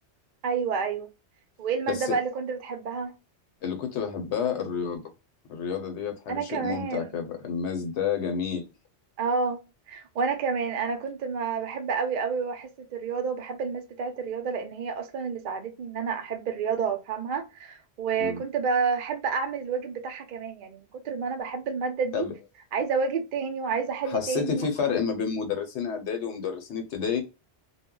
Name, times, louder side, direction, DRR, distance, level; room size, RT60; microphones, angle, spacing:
voice 1, 0.4-1.1 1.6-3.1 6.3-7.1 9.2-9.6 9.9-22.3 22.7-24.7, right 5 dB, 55° right, 0.6 m, -29 dB
voice 2, 3.6-5.0 5.5-8.6 18.2-18.4 22.1-22.3 24.0-27.2, left 6 dB, 85° left, 1.0 m, -30 dB
2.2 x 2.1 x 3.6 m
omnidirectional pair, 1.1 m